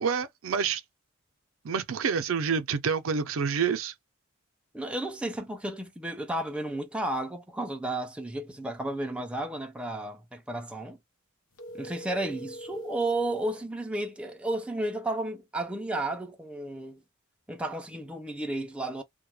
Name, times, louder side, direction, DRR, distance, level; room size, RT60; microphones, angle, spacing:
voice 1, 0.0-0.8 1.6-3.9, right 6 dB, 70° right, 0.5 m, -28 dB
voice 2, 4.7-11.0 11.7-17.0 17.5-19.0, right 1 dB, 5° right, 0.3 m, -33 dB
sound 1, 11.5-13.6, equal, 80° left, 0.8 m, -42 dB
2.2 x 2.1 x 3.0 m
head